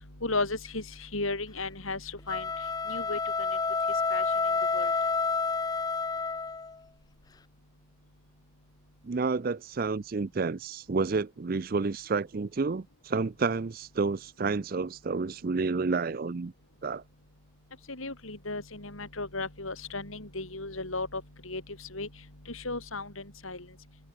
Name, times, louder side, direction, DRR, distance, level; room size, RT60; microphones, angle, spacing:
voice 1, 0.2-2.5 2.9-3.2 4.1-4.2 4.7-4.9 17.9-22.1 22.5-23.7, left 3 dB, 85° left, 5.7 m, -35 dB
sound 1, 2.2-6.8, left 4 dB, 20° left, 0.3 m, -29 dB
voice 2, 9.0-16.5 16.8-17.0, right 4 dB, 45° right, 0.5 m, -30 dB
head